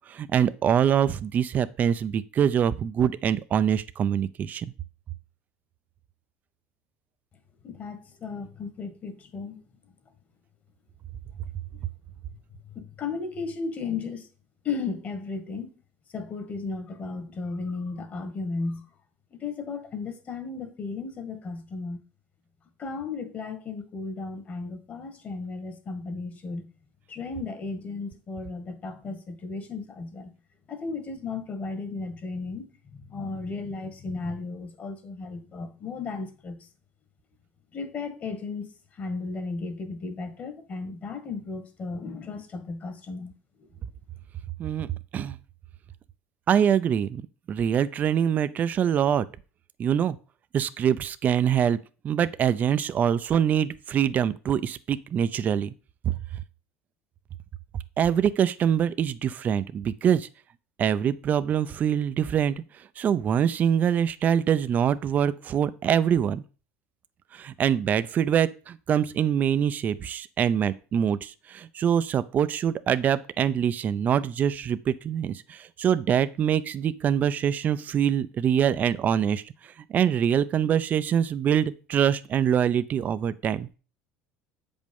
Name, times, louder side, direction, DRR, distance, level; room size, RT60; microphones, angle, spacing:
voice 1, 0.1-4.7 44.6-45.4 46.5-47.2 47.5-49.2 49.8-50.2 50.5-51.8 52.0-55.7 58.0-60.3 60.8-62.6 63.0-66.4 67.3-79.4 79.9-83.7, right 8 dB, 35° right, 0.5 m, -24 dB
voice 2, 7.6-9.6 12.7-14.3 14.6-15.7 16.1-18.9 19.4-22.0 22.8-26.7 27.1-30.3 30.7-32.7 33.1-36.7 37.7-38.7 38.9-43.3 43.6-43.7, left 4 dB, 35° left, 1.6 m, -35 dB
8.0 x 5.3 x 5.4 m
cardioid pair, 125°, 5 cm